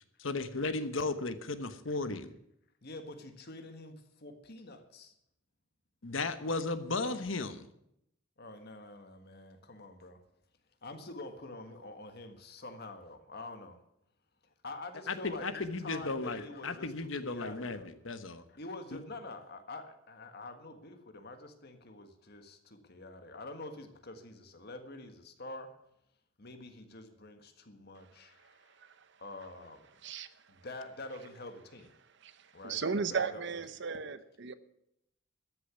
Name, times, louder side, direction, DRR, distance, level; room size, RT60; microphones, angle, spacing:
voice 1, 0.2-2.3 6.0-7.7 15.1-18.4 18.9-19.0, left 3 dB, 70° left, 11 dB, 1.0 m, -35 dB
voice 2, 2.8-5.1 8.4-10.2 10.8-13.8 14.6-16.9 17.2-17.9 18.5-25.7 26.4-28.9 29.2-29.9 30.5-31.9 32.5-33.4, left 2 dB, 50° left, 7 dB, 1.6 m, -46 dB
voice 3, 28.4-29.1 30.0-30.3 32.2-34.5, right 5 dB, 60° right, 13 dB, 0.8 m, -36 dB
13.5 x 6.9 x 9.5 m, 0.78 s
head